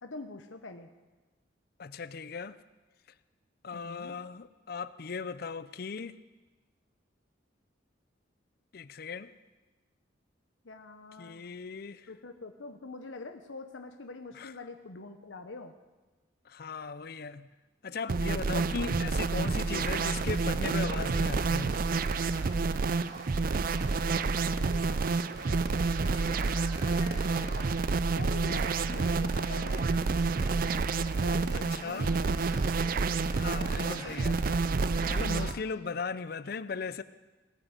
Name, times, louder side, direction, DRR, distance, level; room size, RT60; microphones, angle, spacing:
voice 1, 0.0-0.9 3.7-4.2 10.6-11.4 12.1-15.7 24.0-26.9 27.4-30.0 31.2-32.5 35.2-35.6, left 3 dB, 80° left, 1.0 m, -46 dB
voice 2, 1.8-2.6 3.6-6.2 8.7-9.3 11.2-12.1 14.4-14.5 16.5-17.5 17.8-21.8 31.5-32.1 33.3-34.5 35.1-37.0, left 5 dB, 50° left, 0.5 m, -38 dB
sound 1, 18.1-35.5, right 4 dB, 45° right, 0.4 m, -29 dB
sound 2, 19.5-35.4, equal, 20° right, 4.1 m, -48 dB
sound 3, 27.3-27.8 29.0-29.4 30.5-30.8 31.5-31.6 32.1-32.2 32.6-32.7 33.7-33.9 35.1-35.3, right 3 dB, 85° right, 2.4 m, -47 dB
18.5 x 9.3 x 8.0 m
head